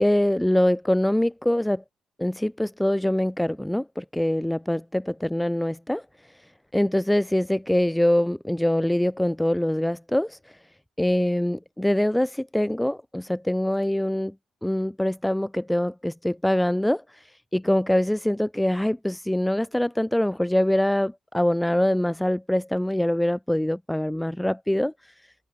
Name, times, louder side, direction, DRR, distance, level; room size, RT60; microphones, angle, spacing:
voice 1, 0.0-1.8 2.2-6.0 6.7-10.4 11.0-14.3 14.6-17.3 17.5-25.1, left 1 dB, 5° left, 0.5 m, -24 dB
open air
cardioid pair, 90°, 0 cm